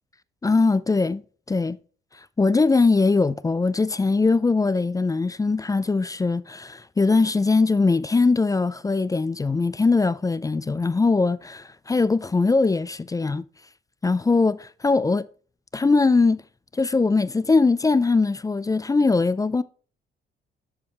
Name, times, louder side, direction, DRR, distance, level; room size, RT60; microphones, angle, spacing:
voice 1, 0.4-1.2 1.5-1.8 2.4-13.4 14.0-15.3 15.7-16.4 16.7-19.6, left 3 dB, 15° left, 0.4 m, -21 dB
11.0 x 4.8 x 3.3 m
cardioid pair, 90°, 20 cm